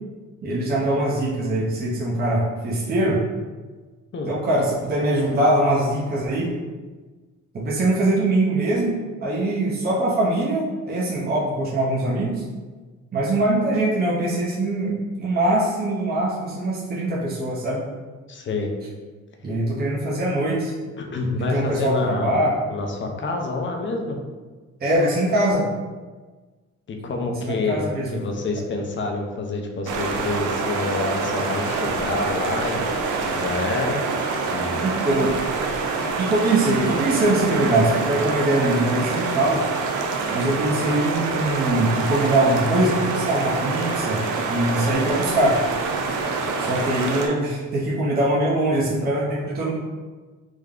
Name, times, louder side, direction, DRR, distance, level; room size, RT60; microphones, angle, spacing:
voice 1, 0.4-3.2 4.3-6.5 7.5-8.9 9.2-12.4 13.1-17.8 19.4-20.7 21.4-22.6 24.8-25.7 27.4-28.1 34.8-35.3 36.2-39.6 40.3-44.2 44.5-45.6 46.6-49.7, right 1 dB, 30° right, -6 dB, 0.7 m, -22 dB
voice 2, 18.3-18.7 21.0-22.4 22.7-24.2 26.9-32.9 33.2-34.0 34.5-34.9, left 3 dB, 40° left, 2 dB, 0.6 m, -27 dB
sound 1, 29.9-47.3, right 4 dB, 80° right, 0.5 m, -26 dB
3.5 x 2.1 x 3.6 m, 1.3 s
cardioid pair, 90°, 30 cm